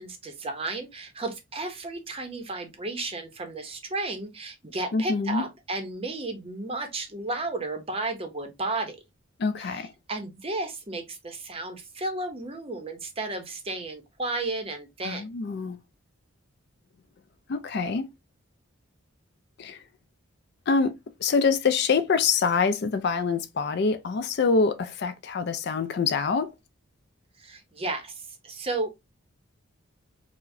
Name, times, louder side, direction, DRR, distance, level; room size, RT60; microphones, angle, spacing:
voice 1, 0.0-9.0 9.6-9.8 10.1-15.3 27.4-29.0, right 2 dB, 25° right, 0.6 m, -33 dB
voice 2, 4.9-5.4 9.4-9.9 15.0-15.8 17.5-18.1 19.6-19.8 20.7-20.9 21.2-26.5, left 5 dB, 50° left, 0.4 m, -25 dB
4.6 x 2.0 x 2.5 m
head